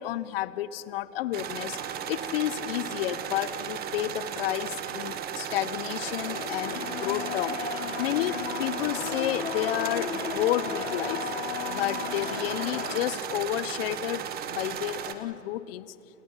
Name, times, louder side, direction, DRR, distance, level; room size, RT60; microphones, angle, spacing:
voice 1, 0.0-1.8 2.1-7.6 8.0-11.3 11.7-15.9, left 13 dB, 45° left, 17 dB, 1.1 m, -31 dB
sound 1, 1.3-15.1, right 9 dB, 20° right, 1.6 m, -35 dB
sound 2, 5.4-13.0, left 6 dB, 65° left, 4.2 m, -35 dB
28.5 x 28.5 x 5.8 m, 2.7 s
hypercardioid pair, 130°, 41 cm